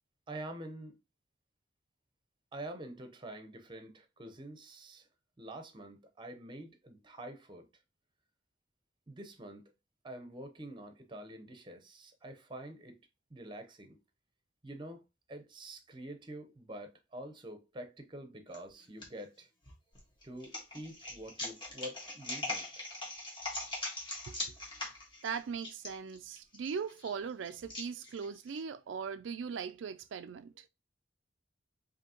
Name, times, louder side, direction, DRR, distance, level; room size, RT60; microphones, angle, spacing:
voice 1, 0.3-1.0 2.5-5.1 5.4-7.7 9.1-9.7 10.0-13.0 13.3-14.0 14.6-19.5 20.2-22.9, right 1 dB, 25° right, 0.8 m, -47 dB
sound 1, 18.5-19.1 19.6-28.6, left 2 dB, 25° left, 1.6 m, -41 dB
voice 2, 25.2-30.7, right 6 dB, 80° right, 0.4 m, -39 dB
5.1 x 2.8 x 2.8 m
head